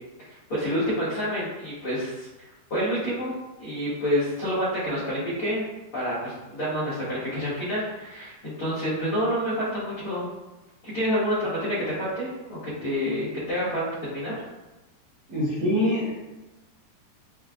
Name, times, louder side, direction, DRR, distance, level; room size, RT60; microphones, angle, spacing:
voice 1, 0.3-3.3 3.6-5.6 5.9-10.3 10.8-14.4, equal, 60° left, -12 dB, 1.4 m, -28 dB
voice 2, 15.3-16.1, left 1 dB, 65° right, -11 dB, 2.0 m, -24 dB
6.5 x 2.3 x 2.4 m, 1.1 s
omnidirectional pair, 4.8 m